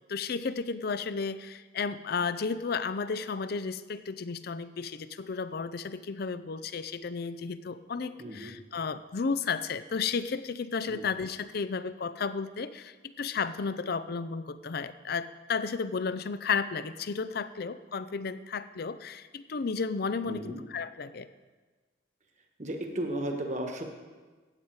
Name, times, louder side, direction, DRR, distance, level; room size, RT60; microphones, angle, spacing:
voice 1, 0.1-21.3, left 5 dB, 55° left, 14 dB, 0.5 m, -33 dB
voice 2, 8.2-8.6 10.9-11.0 20.2-20.6 22.6-23.8, right 1 dB, 40° right, 3 dB, 1.4 m, -34 dB
15.5 x 8.8 x 4.7 m, 1.4 s
head